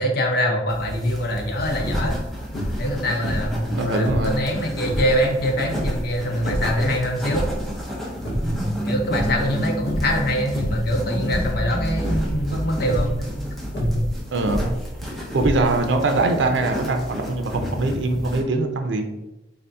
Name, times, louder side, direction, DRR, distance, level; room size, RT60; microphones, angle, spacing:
voice 1, 0.0-2.2 2.8-7.5 8.4-13.2 13.8-14.0, equal, 60° left, 2 dB, 0.6 m, -24 dB
sound 1, 0.7-18.4, equal, ahead, 0.6 m, -33 dB
sound 2, 1.8-2.2 2.5-2.9 3.2-4.4 4.8-5.1 5.7-6.8 7.2-7.7 8.1-8.8 9.1-9.5 9.8-10.2 10.5-10.9 11.2-11.6 12.0-12.4 12.8-13.1 13.7-14.8 15.3-15.9, equal, 75° left, 1.0 m, -27 dB
voice 2, 3.7-4.4 14.3-14.7 15.3-19.1, right 2 dB, 80° right, 5 dB, 0.5 m, -22 dB
sound 3, 8.1-14.6, right 1 dB, 50° right, 1.0 m, -30 dB
3.5 x 2.7 x 3.4 m, 0.97 s
head